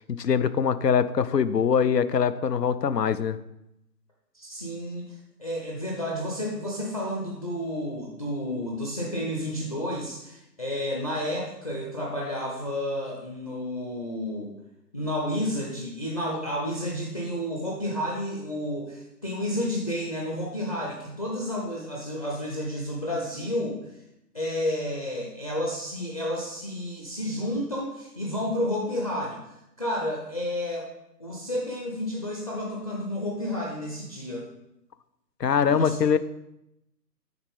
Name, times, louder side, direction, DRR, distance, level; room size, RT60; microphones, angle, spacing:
voice 1, 0.0-3.4 35.4-36.2, left 7 dB, 75° left, 14 dB, 0.7 m, -23 dB
voice 2, 4.3-5.0 5.4-14.5 14.9-23.8 24.3-30.9 31.2-34.5 35.7-36.0, left 1 dB, 20° left, -3 dB, 0.7 m, -31 dB
9.6 x 4.2 x 5.2 m, 0.85 s
figure-of-eight pair, 145°, 50 cm